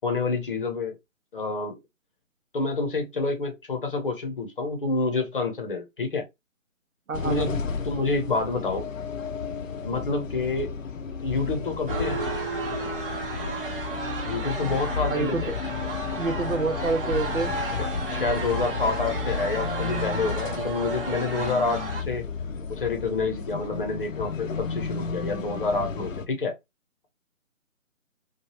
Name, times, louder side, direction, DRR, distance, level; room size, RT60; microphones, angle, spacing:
voice 1, 0.0-1.0 1.3-1.8 2.5-6.2 7.2-8.8 9.8-10.7 11.1-12.2 14.2-15.5 17.8-22.2 22.7-26.5, left 3 dB, 40° left, 0.8 m, -28 dB
sound 1, 7.1-26.3, left 5 dB, 70° left, 0.7 m, -33 dB
voice 2, 7.1-7.6 15.1-15.4 16.2-17.6, right 4 dB, 75° right, 0.8 m, -28 dB
sound 2, 11.9-22.0, right 3 dB, 40° right, 0.8 m, -33 dB
3.2 x 2.3 x 2.7 m
figure-of-eight pair, 150°, 41 cm